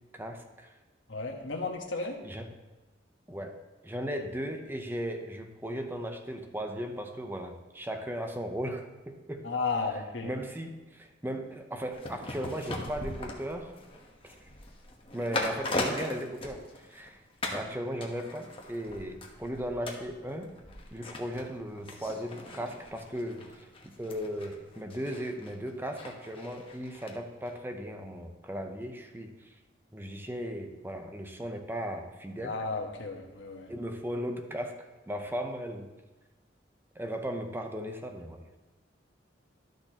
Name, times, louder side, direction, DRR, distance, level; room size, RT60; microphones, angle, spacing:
voice 1, 0.1-0.7 2.2-2.5 3.3-3.5 3.8-9.5 10.2-13.7 14.2-14.4 15.1-17.2 17.5-20.5 20.9-23.5 23.8-29.5 29.9-32.6 33.7-34.8 35.1-35.9 36.9-38.4, equal, 10° right, 5 dB, 0.7 m, -37 dB
voice 2, 1.1-2.2 9.4-10.3 32.4-33.7, left 4 dB, 75° left, 2 dB, 1.3 m, -33 dB
sound 1, 11.9-17.1 17.4-17.7 18.0-27.1 27.4-27.5, left 2 dB, 30° left, 1.1 m, -39 dB
12.5 x 6.4 x 2.9 m, 1.1 s
head